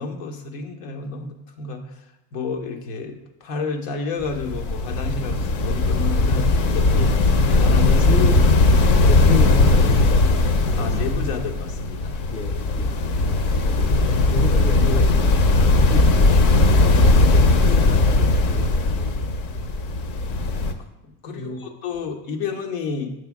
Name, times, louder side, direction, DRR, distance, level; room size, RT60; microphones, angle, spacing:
voice 1, 0.0-2.0 2.3-6.5 6.7-7.1 7.5-8.2 10.8-12.2 13.5-13.6 21.0-23.1, left 4 dB, 85° left, 3 dB, 1.1 m, -30 dB
sound 1, 4.2-20.7, left 2 dB, 55° left, 0.7 m, -18 dB
voice 2, 8.1-8.4 9.0-11.0 12.3-13.0 14.1-16.2 16.7-19.2 21.4-21.7, left 3 dB, 20° left, 6 dB, 0.5 m, -30 dB
7.0 x 3.3 x 5.9 m, 0.93 s
cardioid pair, 135°, 38 cm